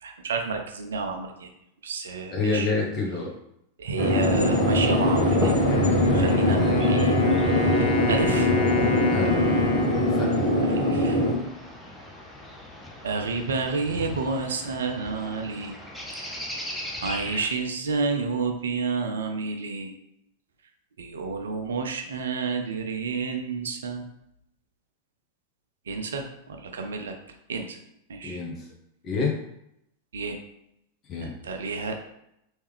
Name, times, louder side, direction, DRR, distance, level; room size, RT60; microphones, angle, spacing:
voice 1, 0.0-1.5 1.8-2.7 3.8-5.8 6.1-7.2 7.8-8.5 10.6-11.2 13.0-15.8 16.2-16.4 17.0-19.9 21.0-24.1 25.9-27.2 27.5-27.8 28.1-28.4 30.1-30.4 31.2-32.1, right 4 dB, 65° right, 5 dB, 0.5 m, -30 dB
voice 2, 2.3-3.3 6.4-6.7 9.1-9.5 10.1-10.5 28.2-28.7 29.0-29.4 31.1-31.3, left 4 dB, 30° left, -1 dB, 1.1 m, -28 dB
sound 1, 4.0-11.3, left 1 dB, 70° left, 1.4 m, -22 dB
sound 2, 4.3-17.5, left 1 dB, ahead, 0.8 m, -38 dB
Wind instrument woodwind instrument, 5.7-11.6, left 4 dB, 55° left, 0.6 m, -30 dB
3.2 x 3.1 x 3.4 m, 0.79 s
figure-of-eight pair, 90°, 0 cm